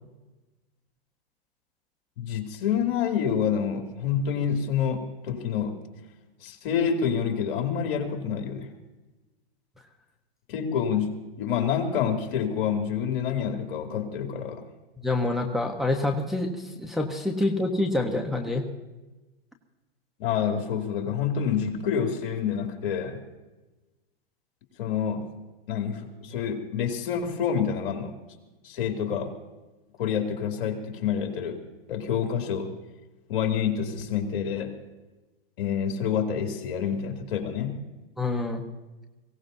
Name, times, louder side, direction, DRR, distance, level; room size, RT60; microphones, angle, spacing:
voice 1, 2.2-5.8 6.4-8.7 10.5-14.6 20.2-23.2 24.8-25.2 25.7-28.1 28.6-29.3 30.0-31.6 31.9-32.7 33.3-34.8 35.6-37.8, left 7 dB, 60° left, 3 dB, 2.7 m, -27 dB
voice 2, 15.0-18.6 38.2-38.6, left 2 dB, ahead, 1 dB, 1.1 m, -27 dB
23.0 x 17.0 x 2.7 m, 1.1 s
hypercardioid pair, 125°, 30 cm